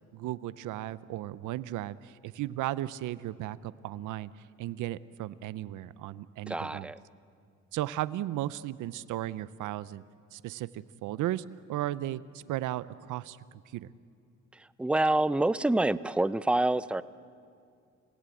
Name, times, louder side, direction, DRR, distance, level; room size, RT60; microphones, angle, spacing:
voice 1, 0.1-6.9 7.7-10.0 10.3-13.9, right 14 dB, 85° right, 17 dB, 0.6 m, -35 dB
voice 2, 6.5-7.0 14.5-17.0, right 2 dB, 5° right, 16 dB, 0.5 m, -27 dB
29.5 x 17.0 x 8.4 m, 2.4 s
cardioid pair, 90°, 30 cm